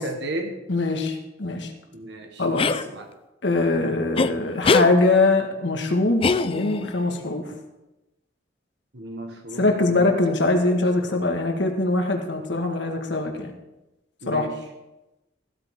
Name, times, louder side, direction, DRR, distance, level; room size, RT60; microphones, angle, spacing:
voice 1, 0.0-0.6 1.9-3.1 8.9-10.2 10.6-11.2 14.2-14.6, right 1 dB, 65° right, 4 dB, 1.4 m, -35 dB
voice 2, 0.7-1.7 2.4-2.7 3.4-7.5 9.6-13.6 14.2-14.5, left 2 dB, 70° left, 3 dB, 1.7 m, -22 dB
sound 1, 2.6-2.8 4.2-4.3 4.6-4.9 6.2-6.9, left 4 dB, 30° left, 0.4 m, -21 dB
15.5 x 12.5 x 3.7 m, 1.0 s
head